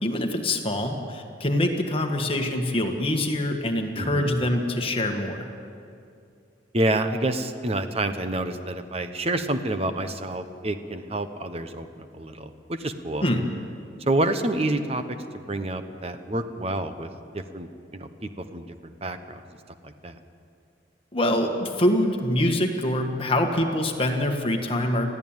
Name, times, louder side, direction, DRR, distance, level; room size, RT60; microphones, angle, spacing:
voice 1, 0.0-5.5 13.2-13.4 21.1-25.2, left 1 dB, 30° left, 3 dB, 1.7 m, -25 dB
voice 2, 4.0-4.4 6.7-13.2 14.1-15.2 15.5-19.4 19.8-20.2, right 1 dB, 35° right, 9 dB, 1.1 m, -28 dB
20.5 x 14.5 x 9.0 m, 2.5 s
head